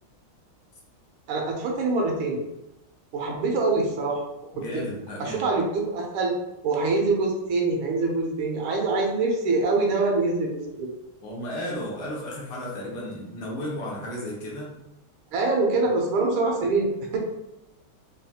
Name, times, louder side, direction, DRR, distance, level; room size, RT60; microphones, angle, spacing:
voice 1, 1.3-2.4 3.1-4.2 4.6-4.8 5.2-6.4 6.6-10.9 15.3-16.9, right 3 dB, 85° right, 0 dB, 1.6 m, -24 dB
voice 2, 4.5-5.5 11.2-14.8, left 1 dB, 80° left, -3 dB, 1.8 m, -34 dB
4.8 x 2.3 x 2.8 m, 0.94 s
omnidirectional pair, 2.3 m